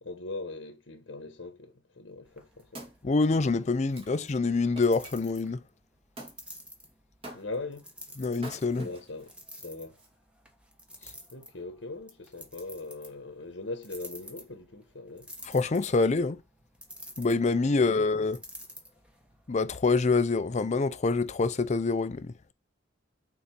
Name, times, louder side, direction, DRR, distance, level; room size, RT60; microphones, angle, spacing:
voice 1, 0.0-2.8 7.3-7.9 8.7-9.3 9.6-9.9 11.3-15.3, left 3 dB, 75° left, 1.2 m, -40 dB
sound 1, 2.2-19.8, equal, 5° right, 1.2 m, -51 dB
Wood, 2.2-5.1 6.2-6.4 7.2-7.8 8.3-9.3 10.0-10.1, right 1 dB, 30° right, 2.0 m, -46 dB
voice 2, 3.0-5.6 8.2-8.9 15.4-16.4 17.2-18.4 19.5-22.3, left 3 dB, 35° left, 0.5 m, -26 dB
6.5 x 4.2 x 5.8 m
head